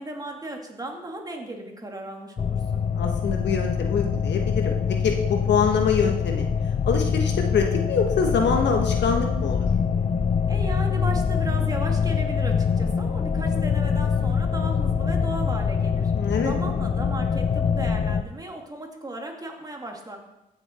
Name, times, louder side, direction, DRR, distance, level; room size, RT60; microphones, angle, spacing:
voice 1, 0.0-2.8 10.5-16.1 16.4-20.2, right 1 dB, 20° right, 2 dB, 2.2 m, -36 dB
sound 1, 2.4-18.2, left 6 dB, 35° left, 0.7 m, -24 dB
voice 2, 2.9-4.8 5.0-6.5 6.8-9.7 16.1-16.5, left 6 dB, 60° left, 3 dB, 1.4 m, -24 dB
15.0 x 6.8 x 4.4 m, 0.93 s
cardioid pair, 90°, 20 cm